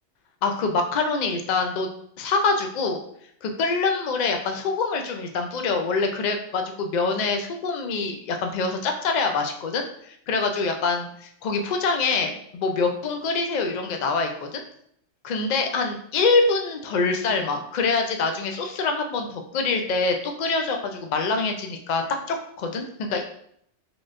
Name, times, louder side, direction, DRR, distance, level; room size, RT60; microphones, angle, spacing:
voice 1, 0.4-1.9 2.2-3.0 3.4-14.6 15.2-22.8 23.1-23.2, left 4 dB, 60° left, 4 dB, 0.4 m, -25 dB
4.0 x 3.2 x 2.5 m, 0.70 s
omnidirectional pair, 1.3 m